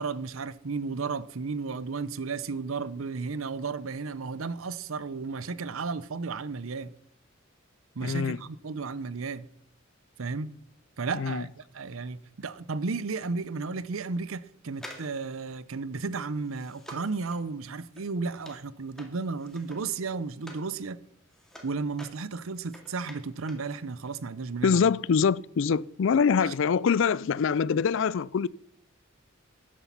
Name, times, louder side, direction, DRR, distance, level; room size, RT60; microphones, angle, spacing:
voice 1, 0.0-6.9 8.0-9.5 10.2-10.5 11.0-21.0 21.6-24.9 26.4-26.5 27.7-27.8, right 4 dB, 85° right, 0.7 m, -33 dB
voice 2, 8.0-8.4 11.1-11.4 24.6-28.5, left 6 dB, 65° left, 0.4 m, -24 dB
sound 1, 14.7-20.7 21.1-23.7 24.0-24.1, equal, ahead, 2.2 m, -49 dB
13.0 x 10.0 x 5.8 m
head